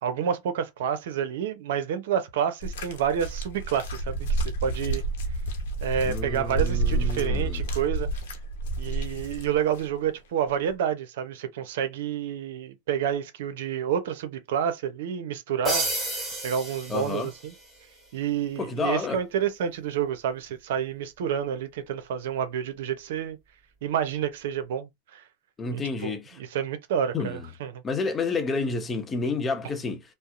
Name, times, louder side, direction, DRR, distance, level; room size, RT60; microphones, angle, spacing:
voice 1, 0.0-5.0 5.8-8.1 8.8-16.1 16.4-17.5 18.1-23.4 23.8-25.2 25.7-27.8, right 8 dB, 75° right, 0.7 m, -29 dB
sound 1, 2.6-9.9 10.7-10.8, right 2 dB, 75° left, 0.9 m, -29 dB
voice 2, 6.1-7.6 16.9-17.3 18.6-19.2 25.6-26.4 27.1-27.4 27.8-30.0, left 4 dB, 20° left, 0.8 m, -30 dB
sound 2, 15.6-17.7, right 1 dB, 5° right, 1.4 m, -31 dB
2.7 x 2.1 x 2.4 m
hypercardioid pair, 115°, 0 cm